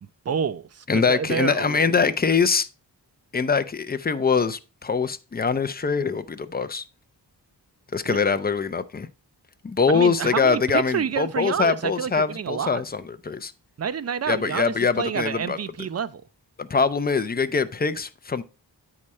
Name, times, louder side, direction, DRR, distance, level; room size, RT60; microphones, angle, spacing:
voice 1, 0.3-1.8 8.1-8.4 9.9-12.8 13.8-16.2, right 7 dB, 40° right, 0.4 m, -28 dB
voice 2, 0.9-2.7 3.3-6.8 7.9-9.1 9.6-13.5 14.3-15.6 16.6-18.4, left 5 dB, 25° left, 0.4 m, -23 dB
8.6 x 4.9 x 4.2 m
wide cardioid pair, 145°, 41 cm